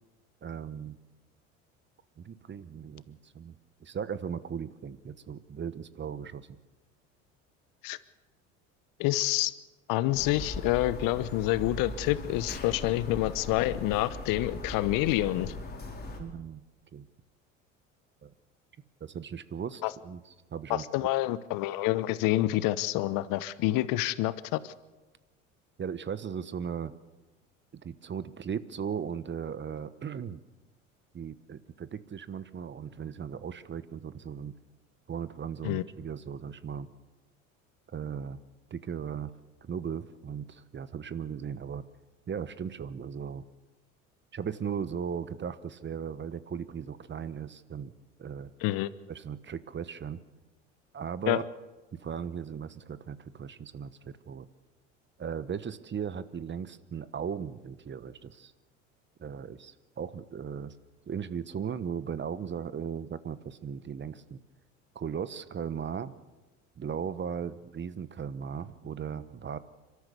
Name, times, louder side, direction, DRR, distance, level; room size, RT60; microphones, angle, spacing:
voice 1, 0.4-1.0 2.2-6.5 16.2-16.6 16.9-17.1 18.2-18.3 19.0-20.2 20.5-21.1 25.8-26.9 27.7-30.4 31.1-34.5 35.1-36.9 37.9-38.4 38.7-39.3 39.6-41.8 42.3-43.4 44.3-48.5 49.1-50.2 50.9-51.4 51.9-54.5 55.2-58.5 59.2-60.7 61.1-64.4 64.9-66.2 66.8-69.6, right 7 dB, 30° right, 15 dB, 1.1 m, -37 dB
voice 2, 9.0-9.5 9.9-15.5 19.8-19.9 20.7-24.7 35.6-35.8 48.6-48.9 51.3-51.4, left 16 dB, 60° left, 17 dB, 1.0 m, -28 dB
sound 1, 10.1-16.2, left 2 dB, 25° left, 4.9 m, -39 dB
30.0 x 13.0 x 6.9 m, 1.2 s
hypercardioid pair, 70°, 38 cm